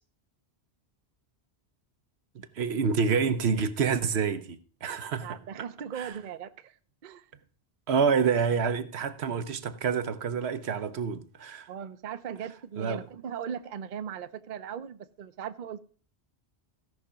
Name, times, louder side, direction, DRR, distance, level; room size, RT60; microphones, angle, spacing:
voice 1, 2.3-5.4 5.9-6.2 7.9-11.7 12.8-13.0, right 6 dB, 75° right, 1.1 m, -28 dB
voice 2, 5.2-6.7 7.0-7.2 11.7-15.8, right 8 dB, 55° right, 0.7 m, -38 dB
16.0 x 5.7 x 5.0 m
omnidirectional pair, 1.1 m